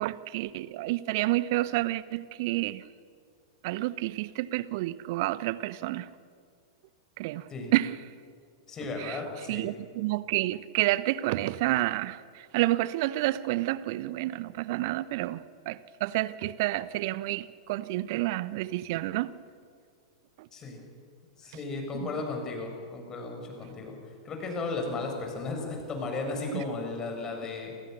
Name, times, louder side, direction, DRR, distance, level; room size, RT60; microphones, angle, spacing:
voice 1, 0.0-2.8 3.6-6.1 7.2-8.0 9.0-9.2 9.5-19.3 20.4-20.5 21.9-22.1 26.5-26.6, right 17 dB, 45° right, 1.0 m, -29 dB
voice 2, 8.7-9.6 20.5-20.8 21.4-23.9 24.2-27.7, left 3 dB, 20° left, 7.3 m, -35 dB
28.5 x 26.5 x 6.9 m
figure-of-eight pair, 95°, 3 cm